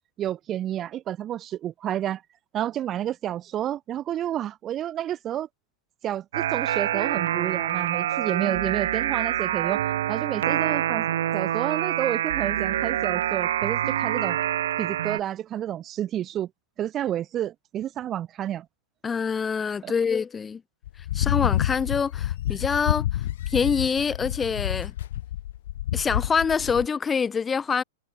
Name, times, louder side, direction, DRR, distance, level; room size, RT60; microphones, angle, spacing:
voice 1, 0.2-2.2 2.5-5.5 6.0-9.8 10.1-11.1 11.3-14.4 14.8-16.5 16.8-18.7 19.8-19.9, right 11 dB, 30° right, 1.9 m, -30 dB
sound 1, 6.3-15.2, right 11 dB, 75° right, 1.3 m, -26 dB
voice 2, 19.0-20.6 21.1-23.1 23.5-24.9 25.9-27.8, left 6 dB, 15° left, 1.1 m, -25 dB
sound 2, 20.9-26.9, left 13 dB, 70° left, 1.8 m, -28 dB
hypercardioid pair, 120°, 0 cm